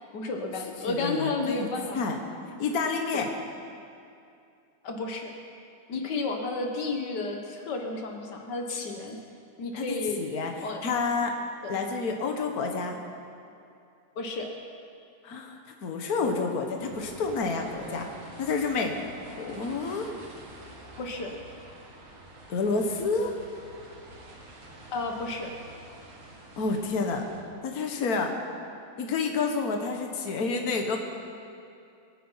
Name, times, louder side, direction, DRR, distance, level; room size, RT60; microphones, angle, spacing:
voice 1, 0.1-2.0 3.1-3.2 4.8-5.3 5.9-9.2 9.6-10.2 10.6-10.8 14.2-14.5 21.0-21.4 24.9-25.5, left 3 dB, 60° left, 3 dB, 1.1 m, -32 dB
voice 2, 0.9-1.7 1.9-2.2 2.6-3.3 9.7-11.3 11.7-13.0 15.2-18.1 18.4-18.9 19.4-20.1 22.5-23.3 26.6-27.2 27.6-28.3 29.0-31.0, left 4 dB, 85° left, 3 dB, 0.8 m, -29 dB
sound 1, 16.8-27.4, right 1 dB, 65° right, 3.5 m, -48 dB
24.5 x 9.2 x 5.7 m, 2.5 s
omnidirectional pair, 3.6 m